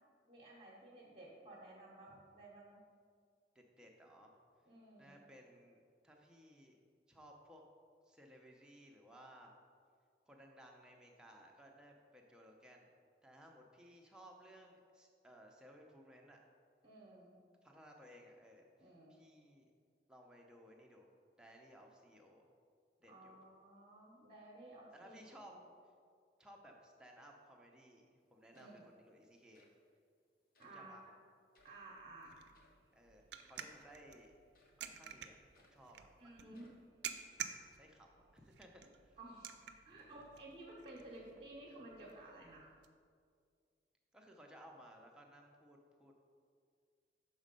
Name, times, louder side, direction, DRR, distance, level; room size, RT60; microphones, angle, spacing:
voice 1, 0.2-2.8 4.6-5.2 16.8-17.4 18.8-19.1 23.1-25.6 28.5-28.9 30.6-31.2 31.6-32.3 36.2-36.7 39.2-39.5 39.8-42.6, right 2 dB, 35° right, -5 dB, 0.8 m, -55 dB
voice 2, 3.5-4.4 5.0-6.8 7.1-7.6 8.0-9.5 10.3-12.9 13.2-16.4 17.6-19.7 20.1-21.1 21.4-22.5 23.0-23.4 24.9-25.5 26.4-29.7 30.7-31.0 32.9-34.3 34.8-36.1 37.8-39.2 44.1-46.1, equal, 5° right, 0 dB, 0.6 m, -60 dB
sound 1, 28.2-28.3 28.5-29.0 29.5-29.8 30.5-30.8 31.5-31.8 32.5-32.8 33.5-33.9 34.5-34.9 35.5-35.9 36.5-36.9, left 2 dB, 50° left, 0.8 m, -71 dB
sound 2, 31.6-42.9, right 9 dB, 75° right, 0.4 m, -52 dB
6.3 x 4.1 x 5.2 m, 2.2 s
head